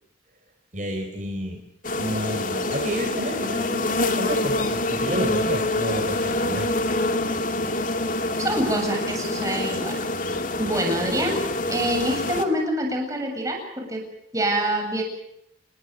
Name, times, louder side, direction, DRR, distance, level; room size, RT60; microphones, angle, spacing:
voice 1, 0.7-1.6 2.0-6.7, equal, 45° right, 2 dB, 4.7 m, -30 dB
sound 1, 1.8-12.5, left 2 dB, 45° left, 2.5 m, -26 dB
voice 2, 8.4-11.4 11.7-14.0 14.3-15.0, right 1 dB, 20° right, 2 dB, 7.9 m, -26 dB
29.0 x 21.5 x 6.7 m, 0.78 s
head